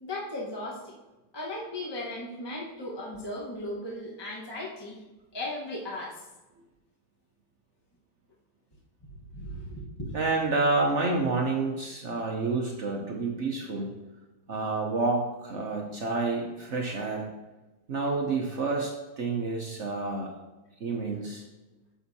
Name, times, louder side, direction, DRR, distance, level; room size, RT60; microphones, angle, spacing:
voice 1, 0.0-1.0 1.3-5.0 5.3-6.2 9.3-10.1, left 1 dB, 15° left, -4 dB, 0.8 m, -36 dB
voice 2, 10.1-13.9 14.5-17.3 17.9-20.3 20.8-21.4, right 3 dB, 65° right, 1 dB, 0.7 m, -29 dB
9.8 x 7.1 x 2.8 m, 1.1 s
omnidirectional pair, 2.4 m